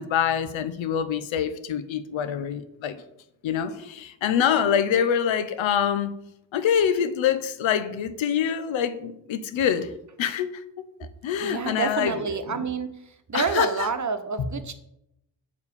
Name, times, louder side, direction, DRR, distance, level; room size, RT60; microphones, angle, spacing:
voice 1, 0.0-3.0 3.4-6.2 6.5-9.9 10.2-10.6 11.0-12.7 13.3-13.9 14.4-14.5, left 8 dB, 80° left, 0.8 m, -25 dB
voice 2, 11.4-12.9 13.3-14.7, right 5 dB, 40° right, 1.1 m, -28 dB
7.0 x 4.7 x 6.8 m
supercardioid pair, 50°, 46 cm